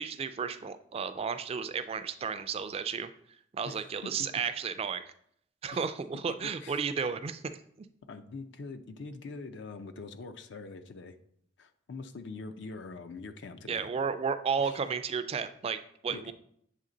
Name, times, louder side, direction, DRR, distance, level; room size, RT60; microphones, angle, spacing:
voice 1, 0.0-3.1 3.5-5.0 5.6-7.6 13.7-16.3, right 6 dB, 30° right, 11 dB, 0.3 m, -33 dB
voice 2, 3.6-4.3 5.7-5.8 6.1-6.8 8.1-11.1 11.6-13.9 14.6-14.8 16.1-16.3, left 3 dB, 65° left, 10 dB, 0.5 m, -44 dB
7.6 x 3.2 x 3.8 m, 0.67 s
head